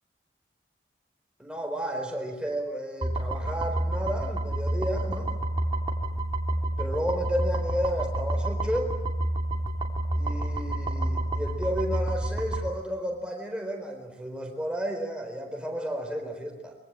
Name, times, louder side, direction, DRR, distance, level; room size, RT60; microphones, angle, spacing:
voice 1, 1.4-5.3 6.8-8.9 10.2-16.8, equal, 5° right, 3 dB, 4.2 m, -32 dB
sound 1, 3.0-12.7, right 1 dB, 25° right, 3.0 m, -29 dB
25.0 x 23.0 x 8.9 m, 1.0 s
head